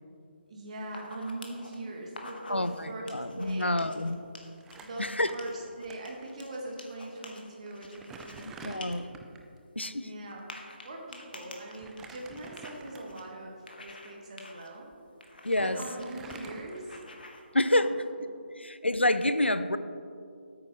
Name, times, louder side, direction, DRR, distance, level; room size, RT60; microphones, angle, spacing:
voice 1, 0.5-3.9 4.8-8.9 9.9-10.5 10.8-14.9 15.6-17.0 17.7-17.9 18.5-18.6, right 1 dB, 35° right, -1 dB, 1.5 m, -41 dB
sound 1, 0.8-1.7 2.1-2.8 3.1-5.0 5.4-8.4 8.8-8.9 9.2-9.3 10.3-13.2 13.7-14.1 14.4-14.7 15.2-16.0 16.3-16.4 16.7-17.4, left 2 dB, 55° left, 1.3 m, -48 dB
voice 2, 2.5-4.2 5.0-5.3 8.4-9.0 9.8-10.1 15.4-15.8 17.5-18.0 18.6-19.8, left 1 dB, 85° left, 12 dB, 0.6 m, -28 dB
Crumpling crinkling, 4.6-5.9 6.2-6.3 7.2-7.3 7.7-9.5 11.7-13.3 13.9-14.0 14.9-15.0 15.2-17.3, right 4 dB, 5° right, 0.4 m, -48 dB
15.5 x 8.8 x 3.1 m, 2.5 s
figure-of-eight pair, 150°, 6 cm